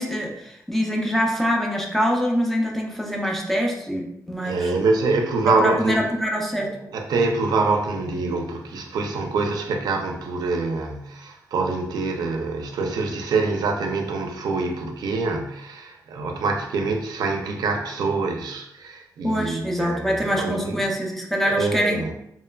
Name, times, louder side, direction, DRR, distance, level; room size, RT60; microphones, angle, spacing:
voice 1, 0.0-4.7 5.4-6.7 19.2-22.0, equal, 5° left, 0.3 m, -24 dB
voice 2, 4.4-6.0 6.6-20.8 21.6-22.1, right 3 dB, 80° right, 0.4 m, -25 dB
2.9 x 2.1 x 2.2 m
wide cardioid pair, 165°, 7 cm